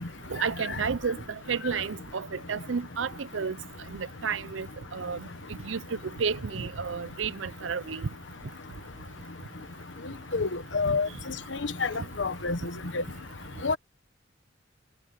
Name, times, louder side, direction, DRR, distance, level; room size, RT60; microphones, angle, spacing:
voice 1, 0.3-1.2 1.5-3.6 3.9-4.7 4.9-5.2 5.6-5.8 6.2-8.1 10.9-11.0, right 6 dB, 85° right, 0.6 m, -31 dB
voice 2, 10.7-11.1 11.8-12.6 12.9-13.0 13.6-13.8, left 4 dB, 75° left, 1.1 m, -27 dB
head